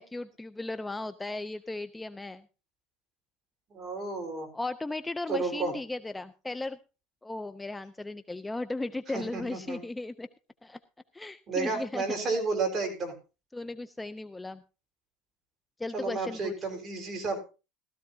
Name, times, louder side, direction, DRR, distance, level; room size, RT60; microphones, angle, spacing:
voice 1, 0.0-2.4 4.5-6.8 7.2-10.3 10.6-10.8 11.1-12.2 13.5-14.6 15.8-16.5, left 2 dB, 10° left, 12 dB, 0.5 m, -36 dB
voice 2, 3.7-4.5 5.3-5.7 9.1-9.8 11.5-13.1 15.9-17.4, right 3 dB, 30° right, 3 dB, 4.3 m, -32 dB
16.0 x 14.0 x 2.7 m, 0.31 s
supercardioid pair, 135°, 0 cm